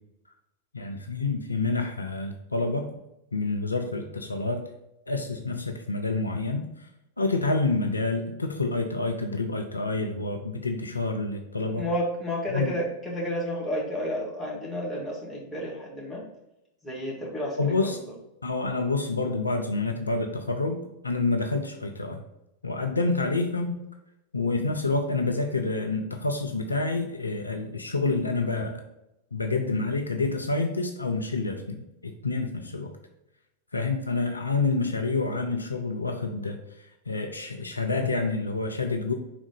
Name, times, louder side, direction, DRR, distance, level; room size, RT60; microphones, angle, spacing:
voice 1, 0.7-2.9 3.3-4.6 5.1-6.6 7.2-11.9 12.5-12.7 17.6-18.0 18.4-22.2 22.6-23.7 24.3-28.8 29.3-32.9 33.7-36.6 37.1-39.1, left 3 dB, 80° left, 4 dB, 0.5 m, -28 dB
voice 2, 11.7-16.3 16.8-17.9, equal, 5° left, -5 dB, 2.0 m, -31 dB
5.1 x 3.7 x 5.3 m, 0.88 s
figure-of-eight pair, 90°, 0 cm